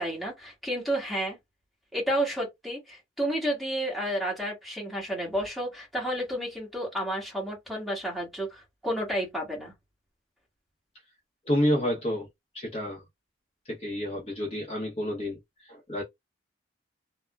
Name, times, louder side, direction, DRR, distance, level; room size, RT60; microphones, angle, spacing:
voice 1, 0.0-1.4 1.9-9.7, right 1 dB, ahead, 1.3 m, -31 dB
voice 2, 11.5-12.3 12.5-13.0 13.7-16.0, equal, 30° left, 0.8 m, -29 dB
3.4 x 2.1 x 2.2 m
head